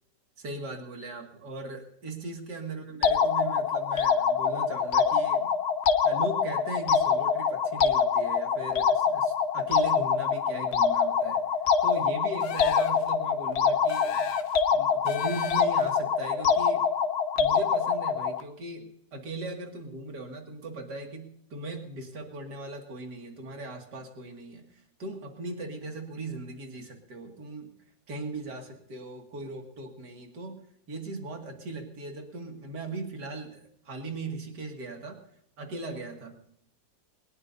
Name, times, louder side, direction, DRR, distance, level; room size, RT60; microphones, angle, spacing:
voice 1, 0.4-5.5 6.0-11.4 11.8-14.3 14.7-16.8 17.4-27.7 28.1-30.6 30.9-35.2 35.6-36.3, right 2 dB, 65° right, 2 dB, 2.9 m, -39 dB
sound 1, 3.0-18.4, left 6 dB, 45° left, 1.1 m, -25 dB
sound 2, 12.4-13.1 13.9-14.6 15.1-15.9, left 7 dB, 75° left, 1.6 m, -37 dB
22.5 x 20.0 x 2.8 m, 0.71 s
omnidirectional pair, 1.9 m